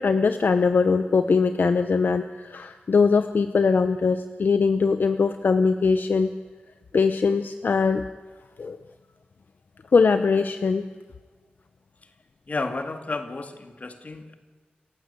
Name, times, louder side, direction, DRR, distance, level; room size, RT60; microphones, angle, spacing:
voice 1, 0.0-6.3 6.9-8.0 8.6-8.8 9.9-10.9, left 4 dB, 70° left, 9 dB, 0.9 m, -21 dB
voice 2, 12.5-14.3, left 3 dB, 45° left, 7 dB, 2.2 m, -32 dB
28.0 x 15.5 x 8.3 m, 1.4 s
wide cardioid pair, 115°, 3 cm